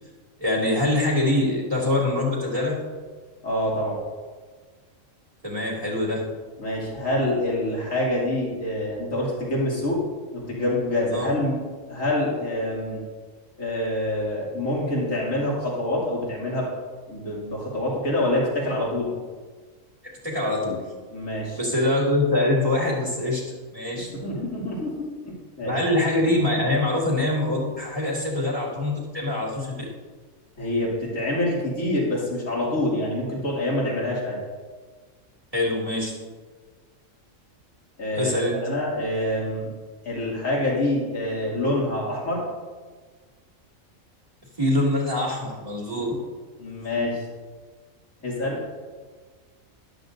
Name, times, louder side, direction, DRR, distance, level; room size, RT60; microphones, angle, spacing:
voice 1, 0.4-2.8 5.4-6.2 11.1-11.3 20.2-20.8 21.5-23.4 23.7-24.1 25.6-29.8 35.5-36.1 38.1-38.6 44.6-46.1, left 1 dB, 25° right, -3 dB, 2.6 m, -24 dB
voice 2, 3.4-4.0 6.6-10.0 10.3-11.6 11.8-13.0 13.6-16.7 17.1-19.1 21.1-21.6 24.1-25.7 30.6-34.4 38.0-38.3 38.6-39.7 40.0-42.4 46.6-47.2 48.2-48.6, left 1 dB, 75° left, -5 dB, 3.1 m, -26 dB
13.0 x 11.5 x 2.7 m, 1.4 s
omnidirectional pair, 1.4 m